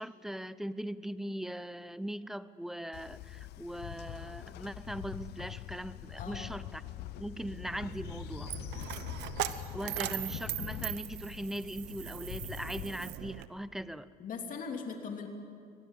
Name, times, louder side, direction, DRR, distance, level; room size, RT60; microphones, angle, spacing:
voice 1, 0.0-6.8 7.2-8.5 9.7-14.1, right 1 dB, ahead, 15 dB, 0.7 m, -40 dB
Train, 2.9-12.9, left 14 dB, 75° left, 0.6 m, -44 dB
voice 2, 6.2-6.5 14.2-15.3, left 5 dB, 50° left, 3 dB, 3.2 m, -40 dB
Coin (dropping), 7.3-13.5, right 14 dB, 85° right, 0.9 m, -40 dB
24.5 x 19.5 x 7.4 m, 2.4 s
cardioid pair, 110°, 17 cm